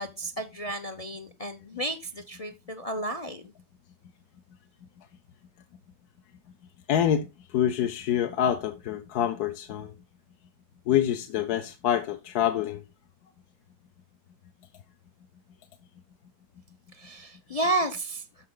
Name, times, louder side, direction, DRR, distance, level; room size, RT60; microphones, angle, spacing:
voice 1, 0.0-3.4 16.9-18.2, right 2 dB, 50° left, 0.4 m, -32 dB
voice 2, 6.9-9.9 10.9-12.8, left 10 dB, 65° left, 1.2 m, -26 dB
13.0 x 4.6 x 3.7 m
omnidirectional pair, 1.9 m